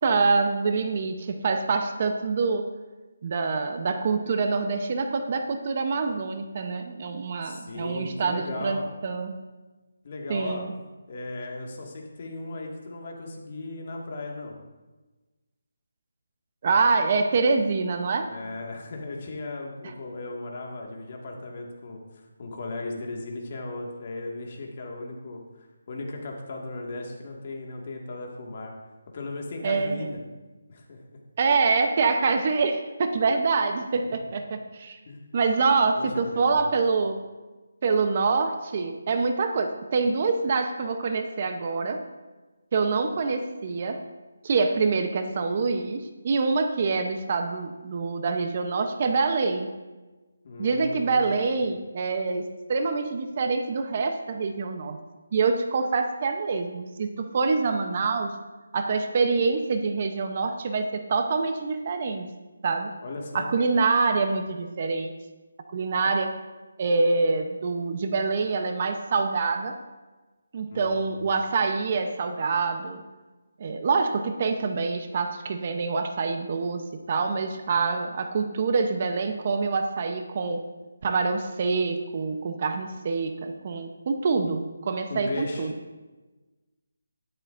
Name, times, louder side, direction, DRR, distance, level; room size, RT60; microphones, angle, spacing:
voice 1, 0.0-2.6 3.2-9.3 10.3-10.7 16.6-18.3 29.6-30.1 31.4-35.0 35.3-37.2 37.8-42.0 42.7-44.0 44.4-49.7 50.6-55.0 55.3-58.3 58.7-62.3 62.6-62.9 63.3-65.1 65.7-66.3 66.8-69.7 70.5-73.0 73.6-80.6 81.0-85.7, right 4 dB, 35° right, 6 dB, 0.7 m, -25 dB
voice 2, 7.4-8.9 10.0-10.7 11.1-14.6 18.3-28.7 29.1-30.2 30.7-31.2 34.0-34.1 35.1-35.3 36.0-36.7 50.4-51.4 63.0-63.5 70.7-71.3 85.1-85.7, left 2 dB, 40° left, 0 dB, 1.8 m, -37 dB
12.0 x 11.0 x 2.6 m, 1.2 s
figure-of-eight pair, 165°, 0 cm